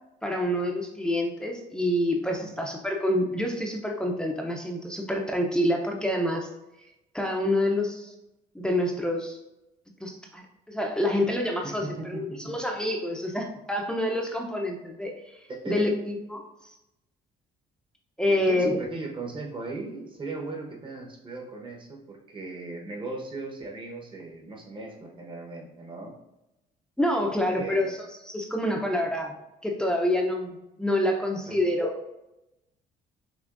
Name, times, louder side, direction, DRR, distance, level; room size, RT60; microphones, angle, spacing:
voice 1, 0.2-6.5 7.1-8.1 8.5-9.4 10.0-15.3 15.7-16.4 18.2-18.8 27.0-29.3 29.6-32.0, left 1 dB, 5° left, 0 dB, 0.6 m, -27 dB
voice 2, 11.6-12.5 15.5-15.9 18.3-26.2 27.5-28.0 31.4-31.8, right 3 dB, 30° right, 1 dB, 1.1 m, -38 dB
6.0 x 3.0 x 2.5 m, 0.92 s
cardioid pair, 110°, 17 cm